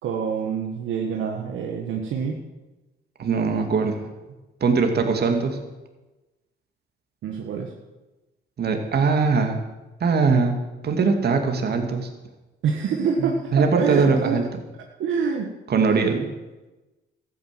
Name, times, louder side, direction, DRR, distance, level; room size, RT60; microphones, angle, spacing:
voice 1, 0.0-2.4 7.2-7.7 12.6-14.4 15.0-15.5 15.9-16.1, right 6 dB, 75° right, 1 dB, 1.6 m, -26 dB
voice 2, 3.2-4.1 4.6-5.6 8.6-9.6 10.0-10.5 10.8-12.1 13.2-14.4 15.7-16.3, right 4 dB, 55° right, 4 dB, 2.4 m, -21 dB
13.5 x 9.4 x 7.7 m, 1.1 s
cardioid pair, 90°, 20 cm